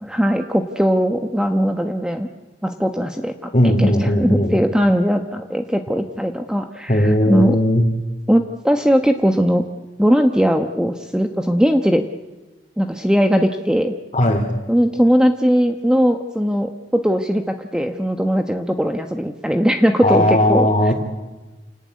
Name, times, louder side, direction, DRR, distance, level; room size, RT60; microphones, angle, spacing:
voice 1, 0.0-2.3 2.6-7.6 8.3-9.6 10.0-12.0 12.8-13.9 14.7-20.9, equal, 5° right, 5 dB, 1.1 m, -19 dB
voice 2, 3.5-4.5 6.9-7.9 14.1-14.6 20.0-20.9, left 1 dB, 35° left, -1 dB, 3.1 m, -17 dB
29.0 x 18.0 x 9.5 m, 1.1 s
head